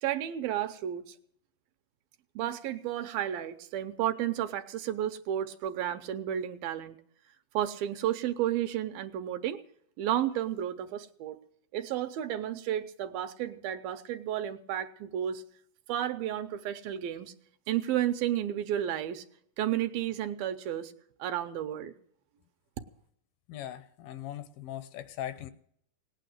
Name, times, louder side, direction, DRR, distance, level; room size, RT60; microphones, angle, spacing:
voice 1, 0.0-1.2 2.4-7.0 7.5-9.6 10.0-11.4 11.7-15.4 15.9-17.3 17.7-19.2 19.6-20.9 21.2-22.0, right 11 dB, 80° right, 8 dB, 2.4 m, -32 dB
voice 2, 23.5-25.5, left 11 dB, 80° left, 12 dB, 2.4 m, -40 dB
18.5 x 9.1 x 7.5 m, 0.68 s
omnidirectional pair, 4.5 m